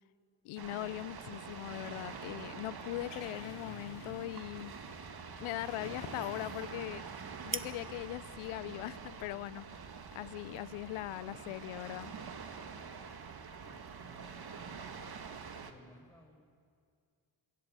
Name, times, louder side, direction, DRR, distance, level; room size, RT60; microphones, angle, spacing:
voice 1, 0.4-4.7 5.4-7.0 7.4-9.7 10.1-12.1, left 17 dB, 80° left, 20 dB, 0.7 m, -40 dB
sound 1, 0.6-15.7, right 5 dB, 50° right, 2.2 m, -46 dB
sound 2, 2.7-4.6 4.9-6.9 7.2-7.4, left 4 dB, 60° left, 3.9 m, -52 dB
sound 3, 3.2-10.9, right 4 dB, 25° right, 1.3 m, -50 dB
voice 2, 13.5-15.2 15.6-16.4, left 1 dB, 5° left, 0 dB, 5.6 m, -60 dB
24.5 x 14.5 x 9.0 m, 2.2 s
supercardioid pair, 55°, 48 cm